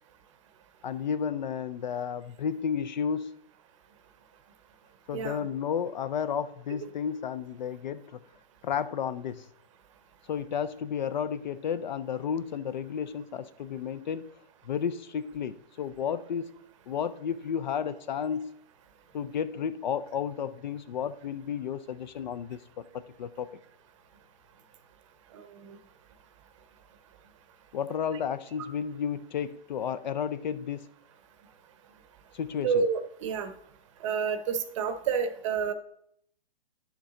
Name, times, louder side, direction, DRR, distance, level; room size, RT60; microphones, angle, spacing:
voice 1, 0.8-3.4 5.1-8.2 8.6-9.5 10.3-14.3 14.6-16.5 16.9-18.5 19.1-23.6 27.7-30.9 32.3-32.8, left 7 dB, 50° left, 14 dB, 0.5 m, -32 dB
voice 2, 5.1-5.4 25.3-25.8 32.6-33.5 34.0-35.7, right 6 dB, 30° right, 10 dB, 0.8 m, -29 dB
10.5 x 7.2 x 3.8 m, 0.74 s
hypercardioid pair, 155°, 31 cm